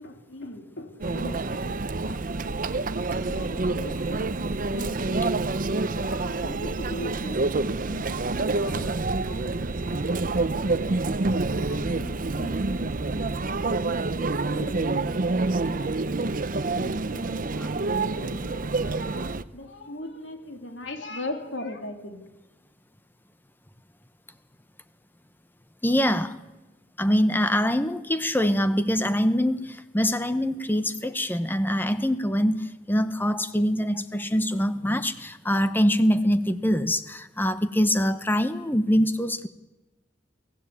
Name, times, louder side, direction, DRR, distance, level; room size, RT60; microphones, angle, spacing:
voice 1, 0.0-4.3 4.7-5.5 5.8-7.4 7.6-11.1 11.5-13.9 14.2-16.2 16.8-17.8 18.2-22.2, left 1 dB, 90° left, 5 dB, 3.2 m, -41 dB
Conversation / Chatter / Crowd, 1.0-19.4, right 3 dB, 50° right, 0.7 m, -27 dB
voice 2, 25.8-26.4 27.0-39.5, equal, 10° left, 11 dB, 0.9 m, -24 dB
23.5 x 16.5 x 8.4 m, 1.1 s
head